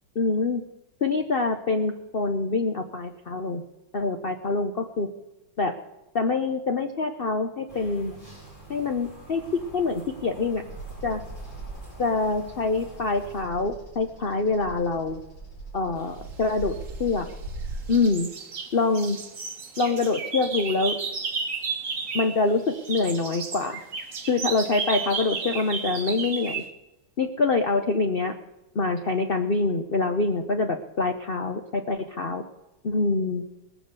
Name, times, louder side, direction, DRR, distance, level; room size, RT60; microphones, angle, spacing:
voice 1, 0.2-0.6 1.0-3.6 3.9-5.1 5.6-5.7 6.1-8.2 8.7-10.6 11.0-11.2 12.0-15.2 15.7-17.3 17.9-18.3 18.7-19.2 19.8-21.0 22.1-23.8 24.3-26.6 27.2-28.3 28.7-32.4 32.8-33.4, left 3 dB, 75° left, 5 dB, 0.5 m, -25 dB
sound 1, 7.7-13.4, right 3 dB, 10° left, 6.6 m, -47 dB
Bird vocalization bird call bird song, 10.7-17.9, right 2 dB, 60° left, 4.4 m, -40 dB
sound 2, 16.8-17.6 17.9-22.4 22.7-26.7, right 5 dB, 45° right, 1.5 m, -33 dB
20.0 x 7.5 x 6.7 m, 0.98 s
omnidirectional pair, 2.2 m